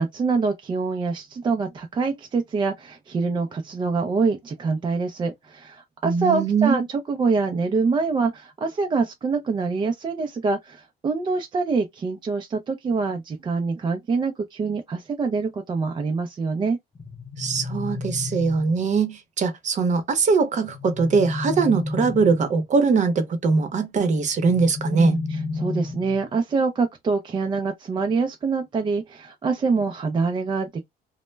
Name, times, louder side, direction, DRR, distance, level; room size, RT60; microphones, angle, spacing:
voice 1, 0.0-16.8 24.9-30.8, right 4 dB, 25° right, 0.4 m, -25 dB
voice 2, 6.0-6.9 17.4-25.2, right 4 dB, 45° right, 0.8 m, -21 dB
sound 1, 16.9-18.9 20.6-22.6 24.4-26.3, left 3 dB, 30° left, 0.6 m, -32 dB
2.1 x 2.1 x 3.1 m
cardioid pair, 110°, 17 cm